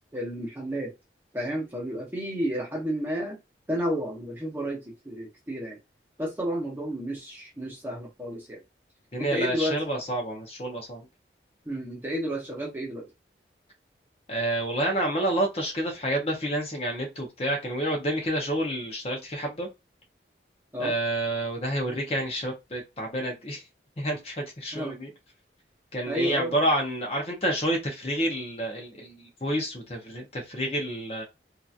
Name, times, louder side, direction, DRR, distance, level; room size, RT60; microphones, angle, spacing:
voice 1, 0.1-0.9 1.3-3.4 3.7-5.8 6.2-8.6 9.2-9.7 11.7-13.1 20.7-20.9 24.7-25.0 26.1-26.6, equal, 10° right, 1.0 m, -31 dB
voice 2, 9.1-11.1 14.3-19.7 20.8-23.6 24.0-25.1 25.9-31.2, right 1 dB, 35° left, 0.8 m, -29 dB
2.9 x 2.5 x 2.4 m
head